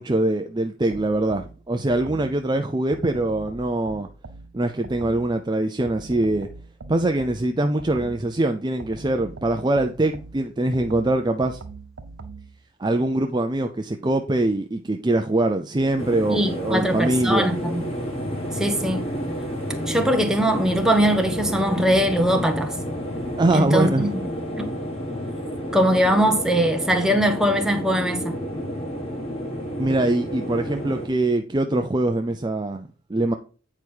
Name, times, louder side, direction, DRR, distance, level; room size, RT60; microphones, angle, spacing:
voice 1, 0.0-4.1 4.5-6.5 6.9-11.6 12.8-17.5 23.4-24.1 29.8-33.3, right 2 dB, 20° right, 0.5 m, -23 dB
sound 1, 0.9-2.4 2.9-5.4 5.9-8.3 8.8-12.6, right 3 dB, 90° right, 0.8 m, -41 dB
sound 2, 16.0-31.1, equal, 30° left, 2.0 m, -30 dB
voice 2, 16.3-17.9 18.5-19.0 19.9-22.7 23.5-24.1 24.6-24.7 25.7-28.4, equal, 5° right, 0.9 m, -21 dB
8.9 x 4.8 x 4.5 m
head